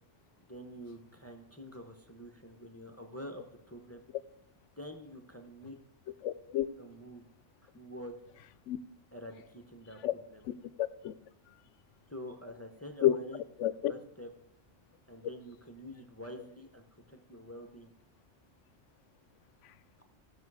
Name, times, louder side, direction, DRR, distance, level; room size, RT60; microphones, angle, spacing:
voice 1, 0.5-4.0 4.8-5.8 6.8-7.2 7.6-8.2 9.1-10.0 10.3-10.4 12.1-13.4 13.9-14.3 15.1-17.9, equal, 15° left, 0.8 m, -47 dB
voice 2, 6.2-6.7 8.7-8.8 10.0-10.1 10.4-11.1 11.5-11.6 13.0-13.1 13.6-13.9 19.6-19.7, left 12 dB, 85° left, 0.9 m, -30 dB
16.0 x 6.1 x 4.8 m
omnidirectional pair, 1.2 m